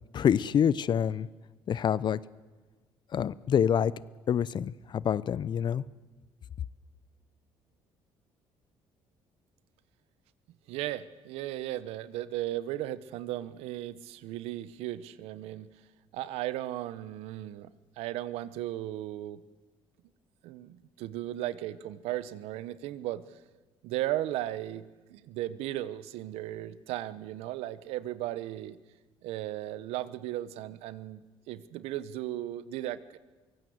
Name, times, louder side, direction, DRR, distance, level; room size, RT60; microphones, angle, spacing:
voice 1, 0.1-1.3 1.7-2.2 3.1-3.9 4.3-5.8, left 8 dB, 50° left, 20 dB, 0.7 m, -26 dB
voice 2, 10.7-15.7 16.1-19.4 20.4-23.2 23.8-28.8 29.2-31.2 31.5-33.2, right 14 dB, 85° right, 16 dB, 1.0 m, -36 dB
23.5 x 17.0 x 8.0 m, 1.3 s
cardioid pair, 90°, 10 cm